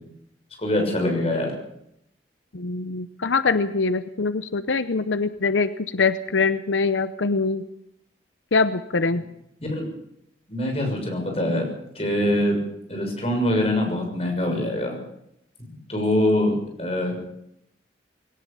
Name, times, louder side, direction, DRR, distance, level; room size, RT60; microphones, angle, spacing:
voice 1, 0.6-1.5 9.6-9.9 10.5-11.7 11.9-12.6 12.9-15.0 15.9-17.2, left 1 dB, 35° left, 3 dB, 6.6 m, -24 dB
voice 2, 2.5-7.6 8.5-9.2, left 4 dB, 85° left, 12 dB, 0.8 m, -23 dB
20.5 x 18.0 x 7.0 m, 0.78 s
head